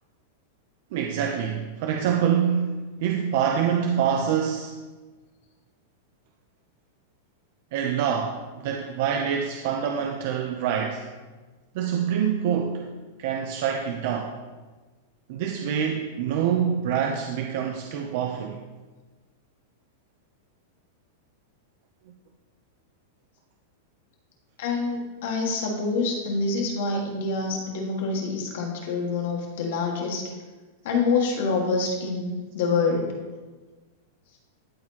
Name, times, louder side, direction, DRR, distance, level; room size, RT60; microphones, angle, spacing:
voice 1, 0.9-4.7 7.7-11.0 11.7-12.8 13.2-14.3 15.3-18.6, right 8 dB, 50° right, 2 dB, 0.6 m, -26 dB
voice 2, 24.6-30.3 30.8-33.1, left 4 dB, 65° left, 0 dB, 1.8 m, -26 dB
12.0 x 4.3 x 2.9 m, 1.3 s
supercardioid pair, 160°, 0 cm